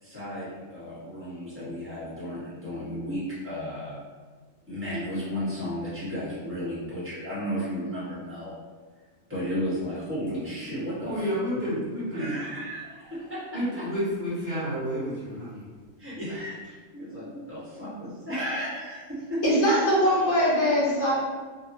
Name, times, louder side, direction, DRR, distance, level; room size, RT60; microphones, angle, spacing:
voice 1, 0.0-4.0 4.7-8.5 9.3-11.3 11.5-11.6 12.1-13.8 16.0-19.4, equal, 10° right, -11 dB, 1.2 m, -34 dB
voice 2, 11.0-12.3 13.5-15.7, equal, 40° right, -11 dB, 0.9 m, -30 dB
voice 3, 19.4-21.1, equal, 60° left, -7 dB, 1.2 m, -21 dB
2.8 x 2.5 x 2.6 m, 1.4 s
omnidirectional pair, 1.3 m